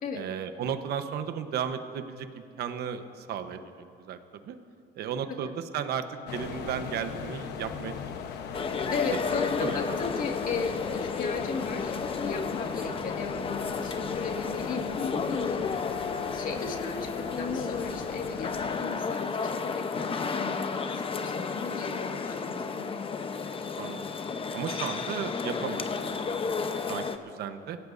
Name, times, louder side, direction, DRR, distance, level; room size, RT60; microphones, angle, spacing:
voice 1, 0.1-4.6 4.9-6.1 6.3-8.1 9.6-10.0 13.0-13.1 23.8-24.1 24.5-27.8, right 8 dB, 70° right, 8 dB, 1.0 m, -35 dB
sound 1, 6.3-18.8, left 7 dB, 85° left, 1.0 m, -39 dB
sound 2, 8.5-27.2, left 5 dB, 35° left, 0.8 m, -32 dB
voice 2, 8.9-15.8 16.3-23.0, left 4 dB, 55° left, 2 dB, 2.0 m, -36 dB
28.0 x 17.5 x 2.7 m, 2.4 s
cardioid pair, 110°, 17 cm